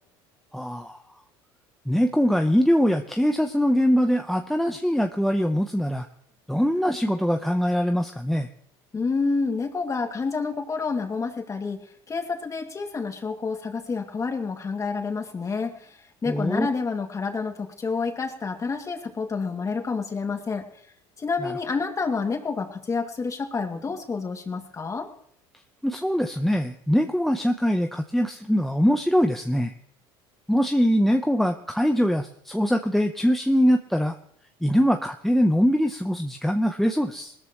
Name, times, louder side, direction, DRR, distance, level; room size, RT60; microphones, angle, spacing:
voice 1, 0.5-1.0 1.9-6.1 6.5-8.5 16.3-16.7 21.4-21.5 25.8-29.7 30.5-34.2 34.6-37.3, equal, ahead, 5 dB, 0.8 m, -22 dB
voice 2, 8.9-11.8 12.1-16.0 16.2-20.6 21.2-25.1, left 4 dB, 25° left, 4 dB, 2.3 m, -28 dB
19.5 x 13.5 x 3.1 m, 0.66 s
supercardioid pair, 100°, 12 cm